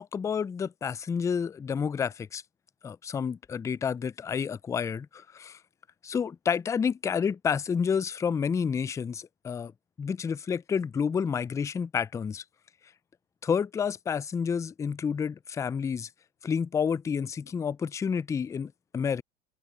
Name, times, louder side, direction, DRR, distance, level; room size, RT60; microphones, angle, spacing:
voice 1, 0.0-2.4 2.8-5.6 6.0-9.7 10.0-12.4 13.4-16.1 16.4-19.2, left 6 dB, 10° left, 0.3 m, -29 dB
open air
hypercardioid pair, 95°, 30 cm